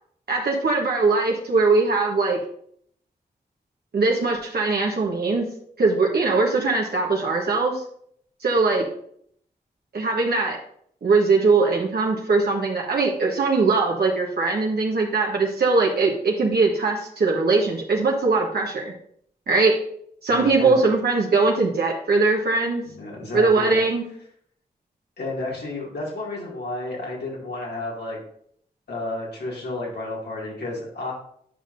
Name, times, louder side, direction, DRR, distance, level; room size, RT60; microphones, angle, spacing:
voice 1, 0.3-2.4 3.9-5.5 5.8-7.8 8.4-8.8 9.9-10.6 11.0-18.9 19.5-19.8 20.2-22.8 23.3-24.1, right 3 dB, 70° right, -1 dB, 1.3 m, -21 dB
voice 2, 20.3-20.8 22.8-23.8 25.2-28.2 28.9-31.1, left 2 dB, 75° left, -3 dB, 2.4 m, -31 dB
9.6 x 5.2 x 2.7 m, 0.66 s
cardioid pair, 45°, 17 cm